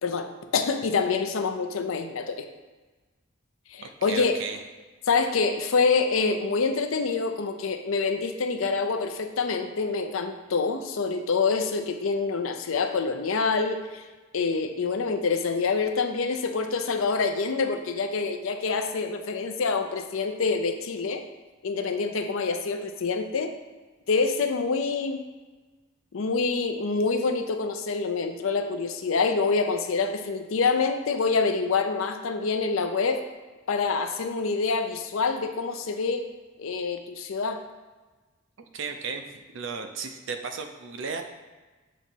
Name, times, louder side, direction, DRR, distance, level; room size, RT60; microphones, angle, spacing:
voice 1, 0.0-2.4 3.7-4.3 5.1-14.0 14.3-21.2 21.6-23.5 24.1-25.2 26.1-33.2 33.7-36.2 36.6-37.6, left 4 dB, 85° left, 7 dB, 0.5 m, -26 dB
voice 2, 3.8-4.6 38.7-39.3 39.5-41.2, right 5 dB, 70° right, 6 dB, 0.5 m, -34 dB
7.0 x 3.0 x 4.5 m, 1.3 s
head